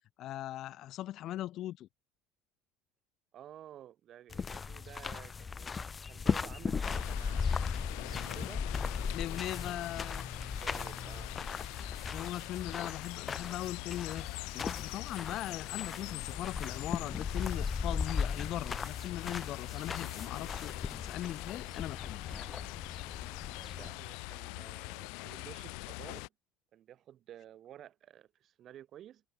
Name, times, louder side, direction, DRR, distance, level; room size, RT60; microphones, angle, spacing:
voice 1, 0.2-1.9 9.1-10.3 12.1-20.7 21.0-22.2, left 13 dB, 45° left, 0.5 m, -40 dB
voice 2, 3.3-8.8 9.6-9.8 10.4-11.3 23.7-26.3 26.7-29.2, right 11 dB, 40° right, 2.9 m, -53 dB
sound 1, 4.3-23.9, left 5 dB, 20° left, 1.0 m, -37 dB
sound 2, 6.8-26.3, left 35 dB, 75° left, 0.9 m, -43 dB
cardioid pair, 160°, 0 cm